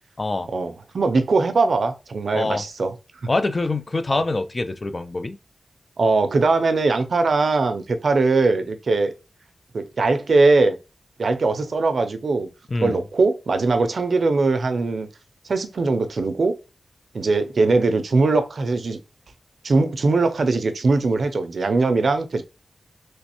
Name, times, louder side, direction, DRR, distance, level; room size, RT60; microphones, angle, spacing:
voice 1, 0.5-2.9 4.1-4.2 6.0-9.1 9.7-10.8 11.2-12.5 12.8-15.1 15.5-16.6 17.1-19.0 19.6-22.4, right 3 dB, 65° right, 0.4 m, -20 dB
voice 2, 3.3-5.4 12.7-13.0, left 2 dB, 35° left, 0.3 m, -25 dB
3.2 x 3.0 x 2.9 m
wide cardioid pair, 95°, 0 cm